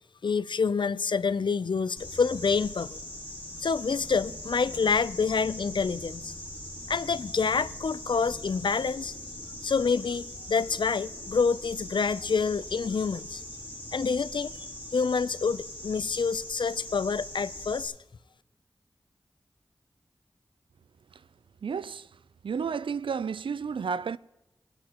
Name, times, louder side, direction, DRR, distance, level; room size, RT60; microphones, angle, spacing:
voice 1, 0.2-3.0 3.6-6.3 6.9-9.1 9.6-13.4 13.9-14.7 14.9-17.9, left 5 dB, 70° left, 0.5 m, -27 dB
sound 1, 2.0-17.9, left 1 dB, 20° left, 3.8 m, -41 dB
voice 2, 21.6-22.1 22.4-24.2, right 6 dB, 80° right, 0.4 m, -32 dB
22.5 x 8.8 x 2.9 m
wide cardioid pair, 45°, 9 cm